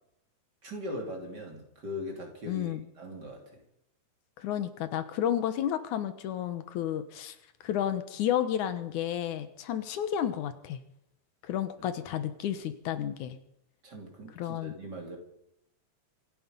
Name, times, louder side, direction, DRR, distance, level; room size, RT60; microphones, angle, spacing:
voice 1, 0.6-3.6 11.8-11.9 13.8-15.2, left 1 dB, 35° right, 1 dB, 3.4 m, -40 dB
voice 2, 2.5-2.8 4.4-7.4 7.6-10.8 11.5-13.4 14.4-14.8, left 10 dB, 75° left, 10 dB, 2.4 m, -31 dB
26.5 x 10.0 x 5.3 m, 0.78 s
omnidirectional pair, 3.5 m